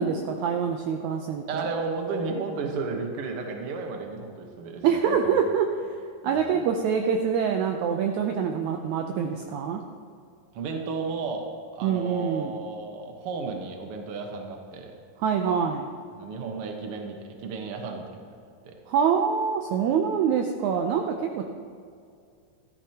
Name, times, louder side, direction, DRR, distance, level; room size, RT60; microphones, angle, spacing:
voice 1, 0.0-1.7 4.8-5.7 6.2-9.8 11.8-12.5 15.2-15.9 18.9-21.4, right 7 dB, 80° right, 3 dB, 1.7 m, -25 dB
voice 2, 1.5-5.4 6.2-6.6 10.5-11.5 11.7-14.9 16.1-18.3 18.6-18.8, right 4 dB, 60° right, 3 dB, 1.6 m, -33 dB
14.5 x 13.5 x 2.9 m, 2.3 s
omnidirectional pair, 4.0 m